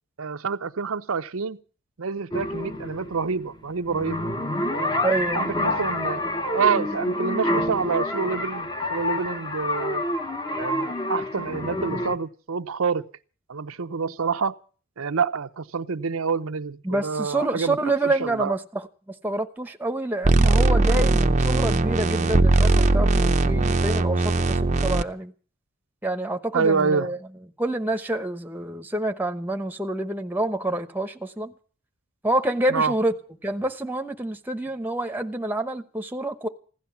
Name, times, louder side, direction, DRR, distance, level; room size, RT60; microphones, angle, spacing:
voice 1, 0.2-1.6 2.0-4.3 4.7-6.2 6.5-10.0 10.6-13.1 13.5-14.6 15.0-17.8 18.0-18.5 26.5-27.1 32.7-32.9, right 5 dB, 90° right, 0.7 m, -27 dB
sound 1, 2.3-12.2, left 1 dB, 20° left, 1.1 m, -28 dB
voice 2, 5.0-5.5 16.8-18.9 19.2-25.3 26.0-27.2 27.6-31.5 32.2-33.1 33.4-36.5, right 1 dB, 10° right, 1.0 m, -27 dB
sound 2, 20.2-25.0, right 2 dB, 35° right, 0.7 m, -20 dB
16.0 x 11.5 x 7.1 m
head